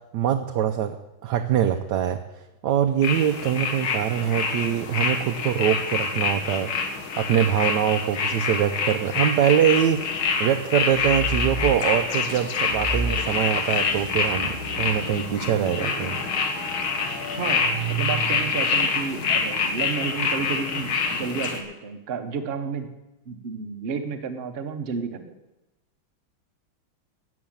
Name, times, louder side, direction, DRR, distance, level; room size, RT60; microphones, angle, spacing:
voice 1, 0.1-1.0 1.2-2.2 2.6-16.2, right 9 dB, 70° right, 6 dB, 1.2 m, -23 dB
sound 1, 3.0-21.6, left 5 dB, 85° left, 2.2 m, -26 dB
sound 2, 10.9-11.9 12.7-18.7, right 3 dB, 10° left, 1.8 m, -33 dB
voice 2, 17.4-22.9 23.3-25.3, right 5 dB, 40° right, 6 dB, 0.9 m, -31 dB
12.5 x 7.5 x 8.7 m, 1.0 s
omnidirectional pair, 2.2 m